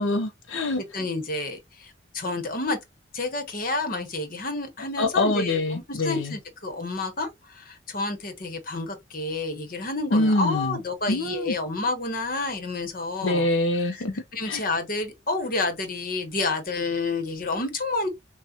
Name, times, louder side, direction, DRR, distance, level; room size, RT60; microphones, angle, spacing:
voice 1, 0.0-0.8 5.0-6.3 10.1-10.8 11.1-11.5 13.2-14.6, left 2 dB, 85° left, 0.6 m, -25 dB
voice 2, 0.8-2.8 3.1-13.5 13.8-18.1, left 3 dB, 45° left, 1.1 m, -30 dB
6.1 x 2.3 x 2.8 m
head